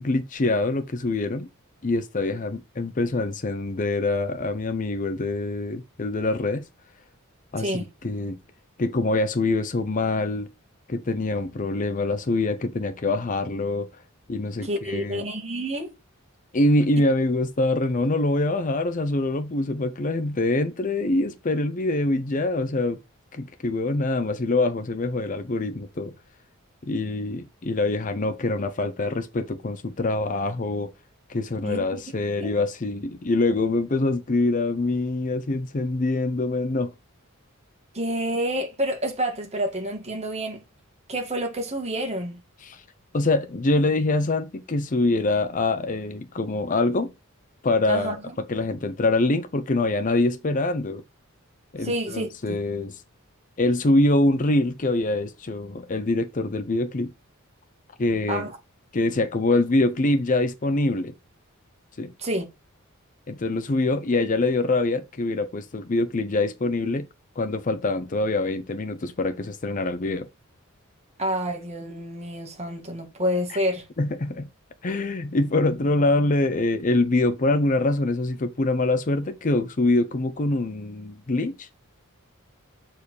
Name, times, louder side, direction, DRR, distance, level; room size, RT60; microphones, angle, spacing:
voice 1, 0.0-1.5 1.8-6.6 7.5-7.7 8.0-8.4 8.8-10.5 10.9-13.9 14.3-15.2 16.5-23.0 23.3-26.1 26.8-30.9 31.3-36.9 42.6-42.8 43.1-47.1 47.6-48.2 48.5-51.0 51.7-53.0 53.6-57.1 58.0-58.4 58.9-61.1 62.0-62.1 63.3-67.1 67.4-70.3 74.0-74.5 74.8-81.7, left 2 dB, 35° left, 0.6 m, -24 dB
voice 2, 7.6-7.9 14.6-15.9 31.6-32.0 32.4-32.5 37.9-40.6 41.1-42.4 47.9-48.2 51.8-52.6 58.3-58.6 62.2-62.5 71.2-73.8, equal, 30° right, 2.1 m, -28 dB
6.9 x 4.5 x 4.6 m
head